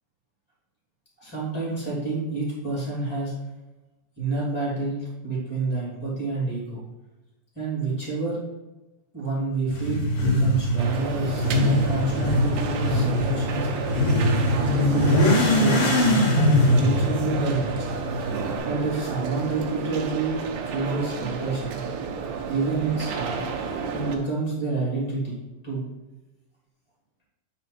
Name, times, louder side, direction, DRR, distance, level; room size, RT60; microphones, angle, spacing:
voice 1, 1.2-3.3 4.2-6.8 7.5-8.4 9.1-13.7 14.8-17.9 18.6-21.8 22.5-23.4 23.9-25.4 25.6-25.8, right 3 dB, 5° left, -5 dB, 2.0 m, -28 dB
Motorcycle / Accelerating revving vroom, 9.7-18.6, left 1 dB, 55° left, 1.8 m, -22 dB
sound 1, 10.8-24.2, right 5 dB, 75° right, 2.3 m, -31 dB
9.1 x 4.2 x 4.3 m, 1.1 s
omnidirectional pair, 3.9 m